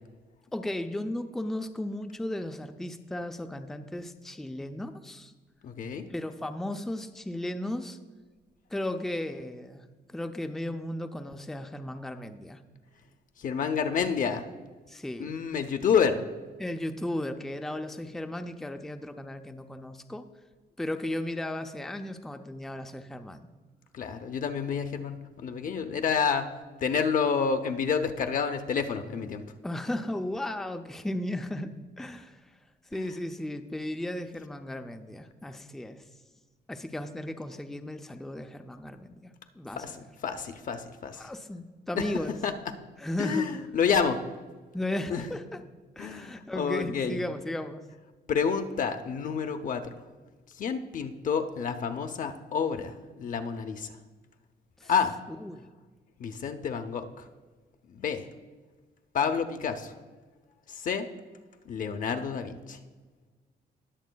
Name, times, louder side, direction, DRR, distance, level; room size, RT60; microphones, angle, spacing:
voice 1, 0.5-5.3 6.1-8.0 8.7-12.6 14.9-15.3 16.6-20.3 20.8-23.5 29.6-32.4 32.9-36.0 36.7-40.0 41.2-42.4 43.0-43.5 44.7-45.6 46.0-47.8 54.8-54.9 55.4-55.7, left 1 dB, ahead, 7 dB, 0.4 m, -35 dB
voice 2, 5.6-6.1 13.4-14.5 15.2-16.2 23.9-26.5 26.8-29.4 32.9-33.1 39.8-40.0 40.2-41.3 41.9-42.7 43.2-44.2 45.1-45.3 46.0-47.2 48.3-49.8 50.6-53.9 54.9-55.2 56.2-57.3 57.9-58.2 59.1-59.9 60.7-61.1 61.7-62.8, left 6 dB, 50° left, 6 dB, 0.6 m, -29 dB
20.0 x 7.3 x 2.2 m, 1.4 s
cardioid pair, 150°, 17 cm